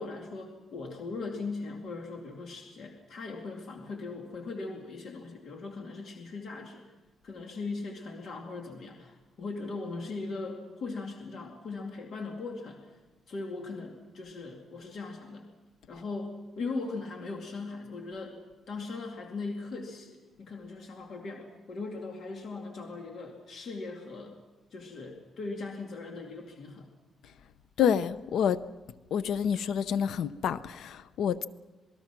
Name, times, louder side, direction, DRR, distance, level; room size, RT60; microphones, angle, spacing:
voice 1, 0.0-6.8 7.2-12.9 13.3-15.5 15.9-18.4 18.7-24.4 24.7-26.9, left 3 dB, 50° left, 1 dB, 2.5 m, -39 dB
voice 2, 27.8-28.6 29.1-31.4, left 8 dB, 65° left, 14 dB, 0.7 m, -28 dB
27.5 x 20.0 x 6.1 m, 1.2 s
cardioid pair, 180°, 0 cm